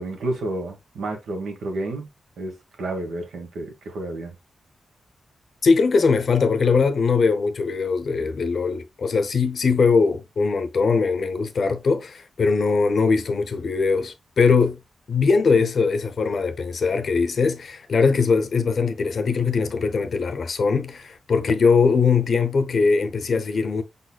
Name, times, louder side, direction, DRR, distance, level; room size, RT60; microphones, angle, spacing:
voice 1, 0.0-2.1 2.4-4.3, right 2 dB, 85° right, 1.4 m, -30 dB
voice 2, 5.6-14.8 15.1-23.8, left 5 dB, 50° left, 0.6 m, -21 dB
5.5 x 4.1 x 2.2 m
wide cardioid pair, 150°, 0 cm